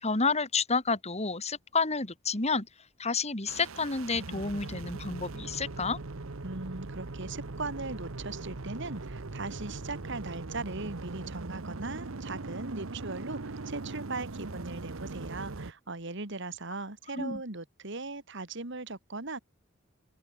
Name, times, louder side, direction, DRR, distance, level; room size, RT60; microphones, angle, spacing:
voice 1, 0.0-2.7 3.0-6.0 17.1-17.4, left 4 dB, 30° left, 2.6 m, -30 dB
sound 1, 3.5-15.7, right 3 dB, 85° right, 1.1 m, -40 dB
voice 2, 6.4-19.4, right 3 dB, 60° right, 2.5 m, -39 dB
open air
head